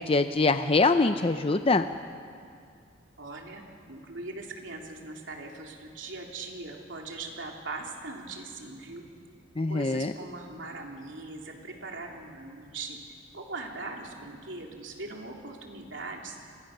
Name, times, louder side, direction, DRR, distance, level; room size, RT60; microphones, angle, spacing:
voice 1, 0.0-1.8 9.6-10.1, left 3 dB, 30° left, 9 dB, 0.6 m, -24 dB
voice 2, 3.2-9.1 9.7-13.0 13.3-16.4, right 3 dB, 70° right, 1 dB, 3.4 m, -40 dB
28.5 x 23.0 x 6.7 m, 2.3 s
head